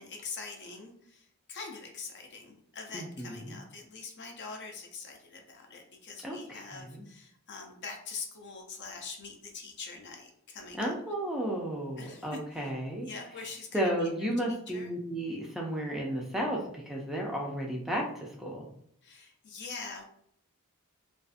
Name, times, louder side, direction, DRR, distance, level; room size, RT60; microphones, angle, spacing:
voice 1, 0.0-11.0 12.0-12.7 13.0-14.9 19.0-20.0, left 4 dB, 55° left, 2 dB, 0.5 m, -44 dB
voice 2, 2.9-3.6 6.2-7.0 10.8-13.1 13.7-18.7, right 1 dB, ahead, -2 dB, 0.3 m, -33 dB
2.5 x 2.3 x 2.4 m, 0.69 s
head